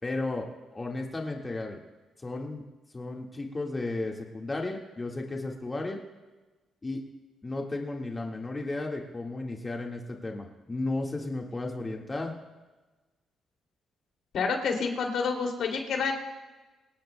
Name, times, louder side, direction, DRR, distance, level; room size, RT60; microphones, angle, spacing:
voice 1, 0.0-1.8 2.2-2.6 2.9-6.0 6.8-7.0 7.4-12.4, left 2 dB, 25° left, 0 dB, 1.7 m, -34 dB
voice 2, 14.3-16.1, left 5 dB, 70° left, 2 dB, 2.7 m, -28 dB
24.0 x 18.5 x 2.2 m, 1.2 s
cardioid pair, 90°, 0 cm